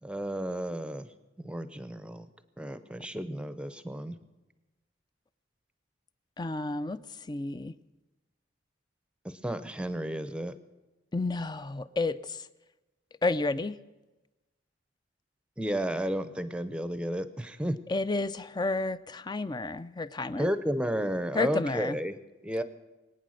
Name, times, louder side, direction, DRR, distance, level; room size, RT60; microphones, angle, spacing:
voice 1, 0.0-1.1 1.4-2.3 2.6-4.2 9.2-10.5 15.6-17.8 20.4-22.2 22.4-22.6, equal, 5° right, 12 dB, 0.7 m, -32 dB
voice 2, 6.4-7.7 11.1-12.4 13.2-13.8 17.9-20.5 21.3-22.0, left 2 dB, 20° left, 15 dB, 0.4 m, -31 dB
23.0 x 9.1 x 6.4 m, 1.1 s
head